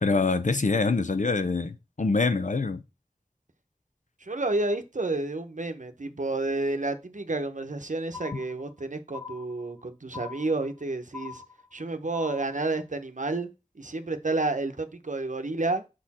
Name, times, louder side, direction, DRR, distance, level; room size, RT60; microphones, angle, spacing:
voice 1, 0.0-2.8 8.3-8.4, left 3 dB, 65° left, 0.6 m, -25 dB
voice 2, 4.2-11.4 11.7-13.5 13.8-15.9, right 2 dB, 65° right, 0.8 m, -30 dB
sound 1, 8.1-8.8 9.1-9.8 10.1-10.8 11.1-11.8 12.1-12.8, left 6 dB, 10° left, 0.7 m, -42 dB
6.6 x 4.3 x 4.2 m
wide cardioid pair, 45°, 14 cm